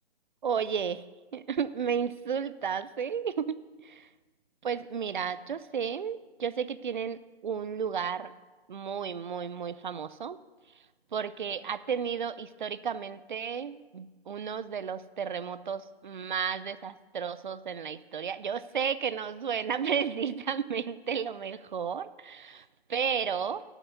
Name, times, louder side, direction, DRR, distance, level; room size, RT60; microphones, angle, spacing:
voice 1, 0.4-1.1 1.3-4.1 4.6-8.3 8.7-10.4 11.1-23.6, right 7 dB, 50° right, 14 dB, 0.5 m, -33 dB
11.0 x 6.0 x 8.2 m, 1.2 s
figure-of-eight pair, 150°, 32 cm